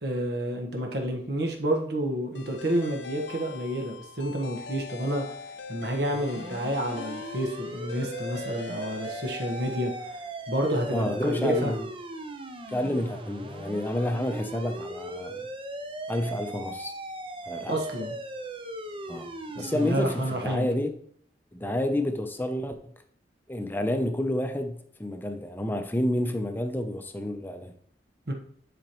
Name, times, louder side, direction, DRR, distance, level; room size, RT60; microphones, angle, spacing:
voice 1, 0.0-5.2 5.7-9.9 10.5-11.7 17.7-18.1 19.5-20.7 28.3-28.4, right 1 dB, 65° right, 1.4 m, -29 dB
sound 1, 2.4-10.5, left 5 dB, 65° left, 0.7 m, -42 dB
sound 2, 6.1-20.5, right 1 dB, 30° right, 0.6 m, -38 dB
voice 2, 10.9-11.9 12.7-15.4 16.1-16.9 17.5-17.7 19.1-21.0 21.5-22.9 23.5-27.7, left 1 dB, 10° left, 0.6 m, -29 dB
10.5 x 5.1 x 3.0 m
head